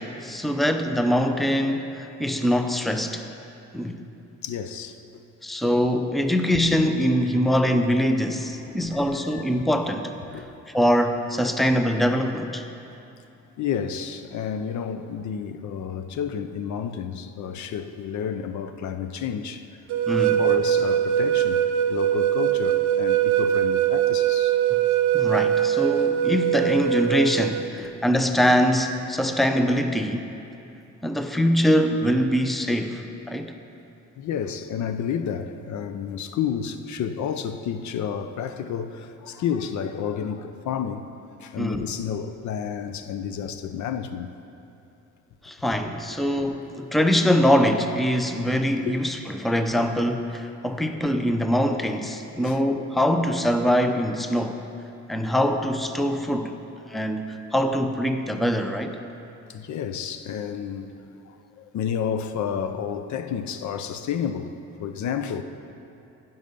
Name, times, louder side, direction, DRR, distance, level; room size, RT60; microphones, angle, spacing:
voice 1, 0.0-3.3 3.7-4.0 5.4-10.1 10.7-12.7 20.1-20.5 25.1-30.3 31.0-33.6 41.6-41.8 45.4-54.6 55.1-56.6 56.9-59.0, equal, ahead, 0.6 m, -23 dB
voice 2, 4.4-5.2 8.9-9.0 9.3-9.4 10.2-10.5 13.6-19.7 20.4-24.6 27.8-27.9 34.2-41.1 41.4-44.3 48.8-49.0 49.8-49.9 50.9-51.0 52.4-52.6 59.5-61.0 61.3-65.4, left 8 dB, 70° left, 0.6 m, -31 dB
sound 1, 19.9-27.7, right 11 dB, 75° right, 0.6 m, -22 dB
15.5 x 5.6 x 5.3 m
cardioid pair, 90°, 30 cm